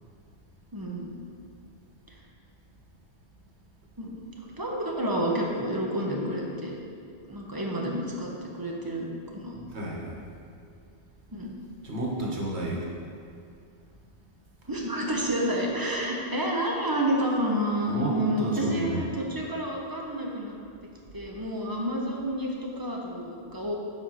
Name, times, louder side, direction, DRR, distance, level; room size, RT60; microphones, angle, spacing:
voice 1, 0.7-1.1 4.0-6.8 7.3-9.1 9.3-9.6 11.3-11.5 14.7-20.6 21.1-23.7, right 1 dB, 20° right, -1 dB, 1.1 m, -29 dB
voice 2, 9.5-10.4 11.8-12.9 17.9-19.1, right 2 dB, 90° right, -3 dB, 1.7 m, -32 dB
7.8 x 5.1 x 5.8 m, 2.3 s
omnidirectional pair, 1.1 m